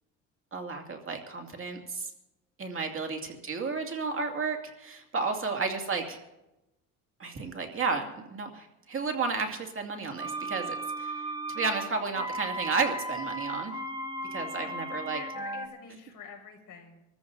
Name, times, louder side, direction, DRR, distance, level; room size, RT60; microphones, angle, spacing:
voice 1, 0.5-2.1 2.6-6.2 7.2-11.2 11.5-13.9 14.3-15.2, right 4 dB, 35° right, 3 dB, 2.3 m, -32 dB
voice 2, 5.2-5.7 14.5-17.0, left 6 dB, 60° left, 1 dB, 5.5 m, -48 dB
sound 1, 10.1-15.7, right 1 dB, 15° right, 1.8 m, -36 dB
26.5 x 14.5 x 2.6 m, 0.95 s
supercardioid pair, 80°, 36 cm